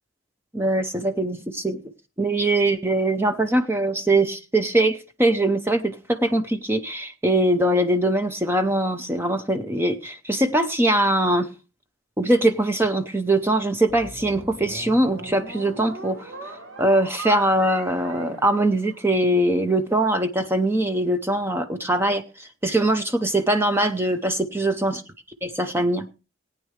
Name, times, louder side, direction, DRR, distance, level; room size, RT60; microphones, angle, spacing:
voice 1, 0.5-1.8 2.2-11.5 12.2-25.0 25.4-26.1, right 1 dB, 10° right, 8 dB, 0.6 m, -22 dB
sound 1, 13.9-19.4, right 2 dB, 65° right, 1.9 m, -39 dB
19.0 x 9.1 x 3.2 m, 0.31 s
head